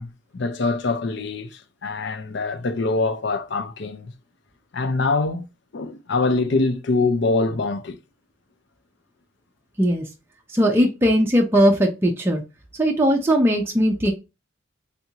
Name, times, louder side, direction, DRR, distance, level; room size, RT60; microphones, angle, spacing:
voice 1, 0.0-4.1 4.7-5.5 5.7-8.0, left 3 dB, 55° left, 0.5 m, -24 dB
voice 2, 10.5-12.4 12.8-14.1, equal, 10° right, 0.5 m, -19 dB
3.5 x 2.5 x 2.8 m
head